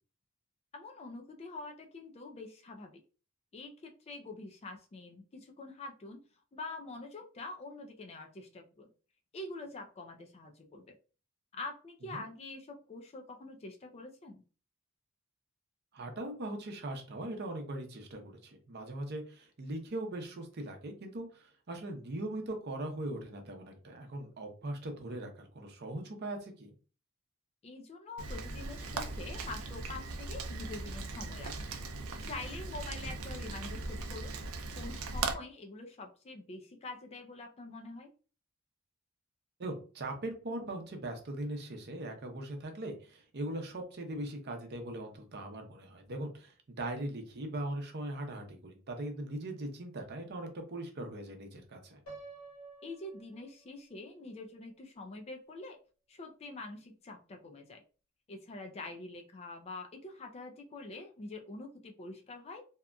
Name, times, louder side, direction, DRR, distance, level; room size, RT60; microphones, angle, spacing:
voice 1, 0.7-3.0 3.5-6.2 6.5-8.9 9.3-11.0 11.5-14.4 27.6-31.5 32.2-34.3 34.7-38.1 52.8-55.8 56.1-57.8 58.3-62.6, left 2 dB, 30° left, 4 dB, 0.4 m, -45 dB
voice 2, 15.9-26.7 32.9-33.1 39.6-52.0, right 1 dB, 50° right, 4 dB, 0.6 m, -40 dB
Rain, 28.2-35.3, right 3 dB, 90° right, 0.5 m, -39 dB
Piano, 52.1-54.0, right 3 dB, 90° left, 1.2 m, -51 dB
2.8 x 2.4 x 2.2 m, 0.37 s
head